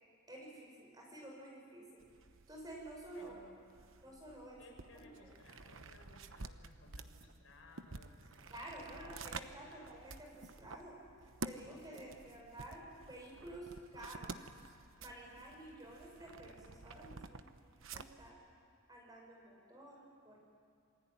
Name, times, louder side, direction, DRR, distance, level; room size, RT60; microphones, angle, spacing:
voice 1, 0.3-2.0 2.5-3.3 4.0-5.3 8.5-11.0 11.4-14.5 15.0-17.5 17.9-18.4 18.9-20.4, right 1 dB, 20° right, -1 dB, 6.3 m, -51 dB
sound 1, 2.0-18.3, right 3 dB, 65° right, 1.0 m, -51 dB
voice 2, 3.1-3.6 4.6-9.0 9.3-9.8, left 2 dB, 70° left, 1 dB, 5.8 m, -61 dB
27.5 x 22.0 x 9.9 m, 2.3 s
head